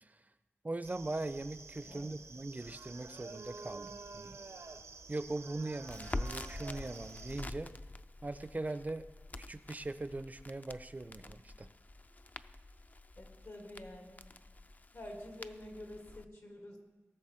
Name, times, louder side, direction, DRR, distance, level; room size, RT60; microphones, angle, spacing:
voice 1, 0.6-4.4 5.1-7.7 8.2-9.0 9.4-11.7, right 2 dB, 35° right, 13 dB, 0.4 m, -40 dB
sound 1, 0.8-7.4, right 4 dB, 85° right, 0.7 m, -50 dB
Crackle, 5.8-16.2, left 2 dB, 35° left, 0.4 m, -46 dB
voice 2, 13.2-14.2 14.9-16.8, left 1 dB, 75° left, 1 dB, 2.2 m, -48 dB
18.0 x 6.7 x 4.3 m, 1.2 s
wide cardioid pair, 80°, 5 cm